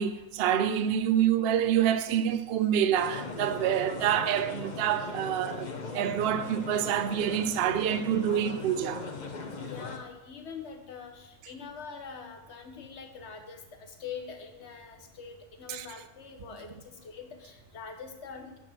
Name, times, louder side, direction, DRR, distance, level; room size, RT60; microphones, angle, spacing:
voice 1, 0.0-9.0 15.7-15.9, right 9 dB, 60° right, 0.7 m, -27 dB
sound 1, 2.9-10.0, left 3 dB, 40° left, 1.0 m, -39 dB
voice 2, 9.6-18.6, left 6 dB, 60° left, 1.4 m, -44 dB
10.5 x 4.6 x 6.1 m
omnidirectional pair, 1.3 m